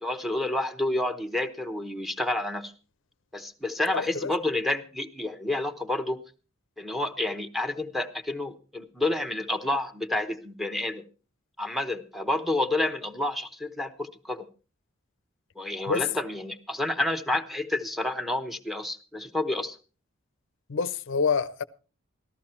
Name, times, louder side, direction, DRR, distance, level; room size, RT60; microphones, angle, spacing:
voice 1, 0.0-2.7 3.3-6.2 6.8-11.0 11.6-14.5 15.6-19.8, left 2 dB, ahead, 0.9 m, -29 dB
voice 2, 3.9-4.3 15.9-16.0 20.7-21.6, left 5 dB, 65° left, 0.6 m, -27 dB
14.0 x 13.5 x 4.4 m
head